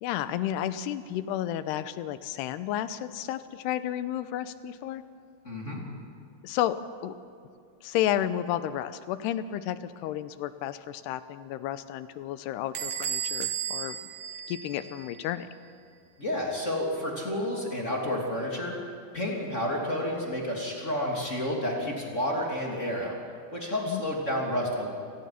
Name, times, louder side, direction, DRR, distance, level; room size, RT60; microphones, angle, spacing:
voice 1, 0.0-5.0 6.4-6.8 7.0-7.1 7.8-14.0 14.5-15.5 23.9-24.0, left 12 dB, 85° left, 13 dB, 2.9 m, -32 dB
voice 2, 5.4-5.8 16.2-18.7 19.1-23.2 23.5-24.9, left 1 dB, 20° left, -2 dB, 2.6 m, -30 dB
Bell / Door, 12.7-15.2, right 9 dB, 75° right, 1.4 m, -34 dB
29.0 x 19.0 x 5.8 m, 2.4 s
omnidirectional pair, 4.7 m